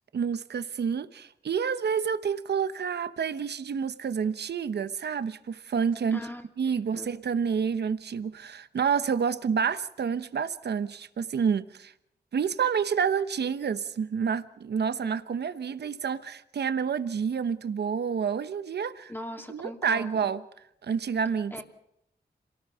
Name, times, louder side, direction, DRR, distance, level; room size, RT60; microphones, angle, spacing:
voice 1, 0.1-6.2 6.6-11.9 12.3-19.1 19.5-20.4 20.8-21.6, right 6 dB, 75° right, 1.0 m, -29 dB
voice 2, 6.1-6.4 6.7-7.1 19.1-20.3 21.5-21.6, left 1 dB, 10° left, 2.9 m, -40 dB
27.0 x 18.5 x 5.7 m
cardioid pair, 80°, 17 cm